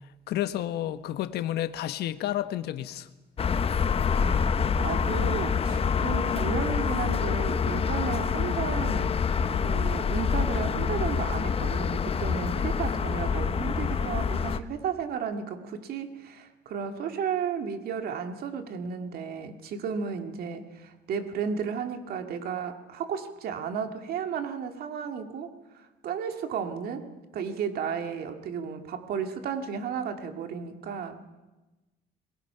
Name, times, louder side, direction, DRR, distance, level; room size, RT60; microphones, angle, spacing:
voice 1, 0.3-3.1, left 13 dB, 75° left, 1.2 m, -30 dB
sound 1, 3.4-14.6, left 6 dB, 35° left, 0.9 m, -26 dB
voice 2, 4.2-9.2 9.6-31.3, right 6 dB, 65° right, 2.2 m, -33 dB
27.5 x 21.5 x 5.8 m
cardioid pair, 110°, 17 cm